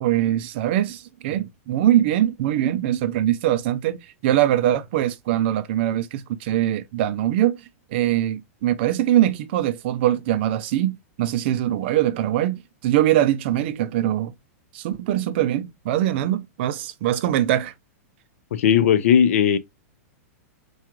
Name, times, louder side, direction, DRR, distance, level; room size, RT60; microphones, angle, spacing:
voice 1, 0.0-7.6 7.9-14.3 14.7-17.7, right 12 dB, 45° right, 0.4 m, -22 dB
voice 2, 18.5-19.6, left 8 dB, 65° left, 0.5 m, -17 dB
4.7 x 2.3 x 2.9 m
supercardioid pair, 160°, 8 cm